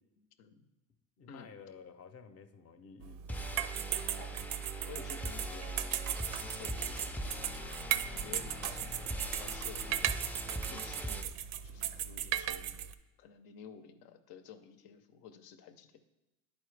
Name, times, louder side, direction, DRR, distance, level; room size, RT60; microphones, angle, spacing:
voice 1, 0.2-0.7 1.3-1.5 4.2-4.5 4.9-5.8 6.2-7.6 8.1-10.1 10.7-11.4 11.6-12.8 13.2-16.0, left 7 dB, 75° left, 9 dB, 0.7 m, -52 dB
voice 2, 1.2-3.2, left 6 dB, 40° left, 9 dB, 0.7 m, -52 dB
sound 1, 3.0-12.9, right 11 dB, 60° right, 0.5 m, -37 dB
sound 2, 3.3-11.2, equal, 5° left, 0.4 m, -41 dB
10.5 x 4.3 x 3.3 m, 0.99 s
supercardioid pair, 95°, 37 cm